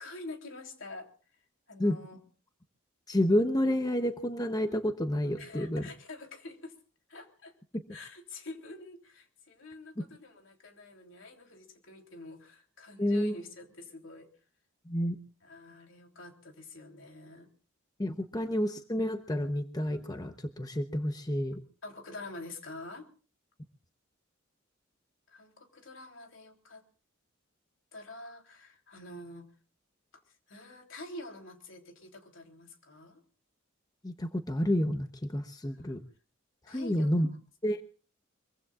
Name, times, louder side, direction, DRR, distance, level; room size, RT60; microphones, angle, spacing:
voice 1, 0.0-1.4 1.7-2.2 5.4-6.8 7.1-7.5 7.9-14.3 15.4-17.5 21.8-23.1 25.3-26.8 27.9-29.5 30.1-33.2 35.7-35.9 36.7-37.4, left 2 dB, 70° left, 3 dB, 3.5 m, -47 dB
voice 2, 3.1-5.8 13.0-13.3 14.9-15.2 18.0-21.6 34.0-35.1 35.3-36.0 36.7-37.3 37.6-37.8, left 1 dB, 20° left, 7 dB, 0.9 m, -29 dB
24.5 x 23.5 x 2.5 m, 0.38 s
head